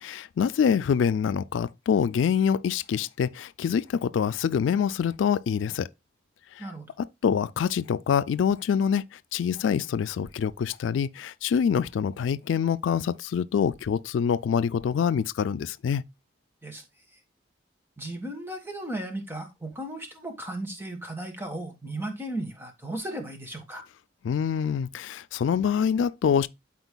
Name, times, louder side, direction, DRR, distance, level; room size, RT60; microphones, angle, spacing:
voice 1, 0.0-5.9 6.6-6.7 7.0-9.0 9.3-16.0 24.2-26.5, left 7 dB, 85° left, 0.3 m, -25 dB
voice 2, 6.6-6.9 16.6-16.8 18.0-23.8, right 1 dB, 10° right, 1.4 m, -35 dB
12.0 x 4.4 x 2.2 m
head